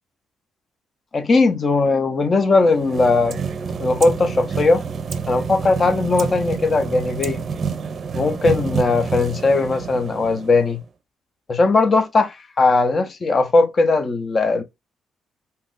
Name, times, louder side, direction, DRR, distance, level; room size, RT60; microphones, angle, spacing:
voice 1, 1.1-3.4 3.8-4.8 5.3-7.4 8.1-10.8 11.5-14.6, left 3 dB, 40° left, 0.7 m, -18 dB
sound 1, 2.6-10.8, right 6 dB, 50° right, 0.5 m, -28 dB
2.8 x 2.4 x 3.7 m
cardioid pair, 90°, 0 cm